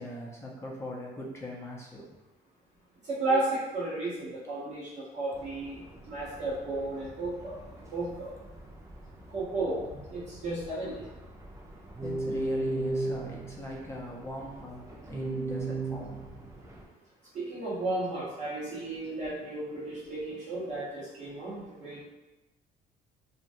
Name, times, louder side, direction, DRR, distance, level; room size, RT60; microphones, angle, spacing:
voice 1, 0.0-2.1 12.0-16.2, left 1 dB, 15° left, -3 dB, 0.7 m, -40 dB
voice 2, 3.0-7.6 7.9-8.3 9.3-9.8 10.1-11.0 17.3-22.0, right 2 dB, 45° right, -9 dB, 1.0 m, -33 dB
sound 1, 5.3-16.8, right 2 dB, 15° right, 0.4 m, -38 dB
3.0 x 2.3 x 2.6 m, 1.0 s
cardioid pair, 110°, 17 cm